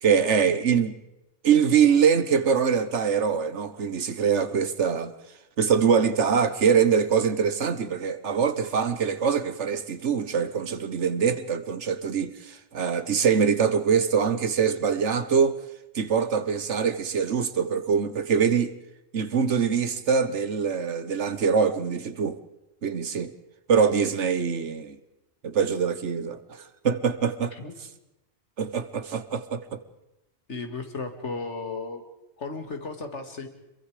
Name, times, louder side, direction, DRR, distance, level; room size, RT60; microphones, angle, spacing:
voice 1, 0.0-0.9 1.4-5.1 5.6-15.6 15.9-18.7 19.1-22.4 22.8-23.3 23.7-25.0 25.4-27.5 28.6-29.8, right 6 dB, 90° right, 1.5 m, -23 dB
voice 2, 30.5-32.0 32.4-33.5, left 3 dB, 90° left, 2.6 m, -34 dB
27.5 x 22.5 x 5.1 m
omnidirectional pair, 1.2 m